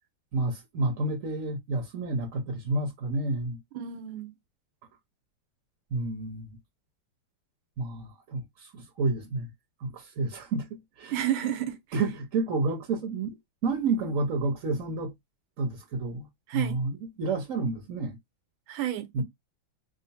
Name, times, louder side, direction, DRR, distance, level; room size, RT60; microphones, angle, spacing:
voice 1, 0.3-3.6 5.9-6.5 7.8-9.5 9.8-11.1 11.9-13.4 13.6-15.1 15.6-18.2 19.1-19.2, right 3 dB, 55° right, 0.9 m, -30 dB
voice 2, 3.7-4.3 11.1-11.8 16.5-16.8 18.7-19.2, right 11 dB, 80° right, 1.5 m, -30 dB
3.8 x 2.0 x 4.0 m
omnidirectional pair, 2.2 m